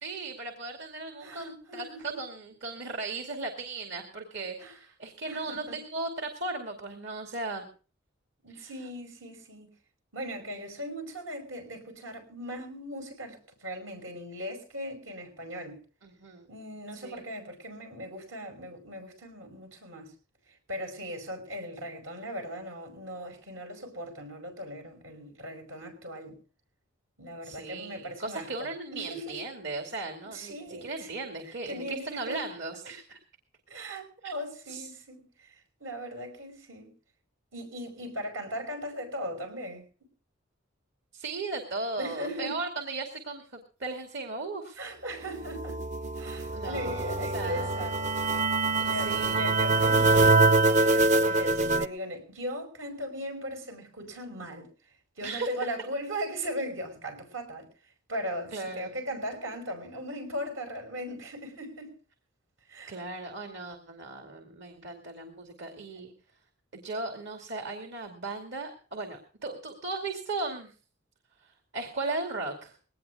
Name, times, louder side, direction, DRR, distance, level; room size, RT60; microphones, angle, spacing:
voice 1, 0.0-7.6 8.5-8.7 16.0-16.5 16.9-17.2 27.4-33.2 34.2-34.3 34.7-34.9 41.1-43.4 43.8-44.8 46.5-47.8 48.8-49.6 55.2-55.5 58.5-58.9 62.9-66.1 66.7-70.7 71.4-72.7, right 3 dB, 65° right, 2.4 m, -37 dB
voice 2, 1.2-2.2 4.6-4.8 5.3-5.8 8.4-9.7 10.1-15.8 16.5-20.1 20.7-26.4 27.2-29.5 30.3-31.1 31.7-32.5 33.7-36.9 37.5-39.8 42.0-42.6 44.8-45.8 46.2-48.1 48.8-54.7 55.2-57.7 58.1-61.9 62.7-63.0 66.0-66.1, equal, 80° right, 5.4 m, -38 dB
sound 1, 45.3-51.9, right 3 dB, 40° right, 0.7 m, -24 dB
21.5 x 18.5 x 2.4 m
head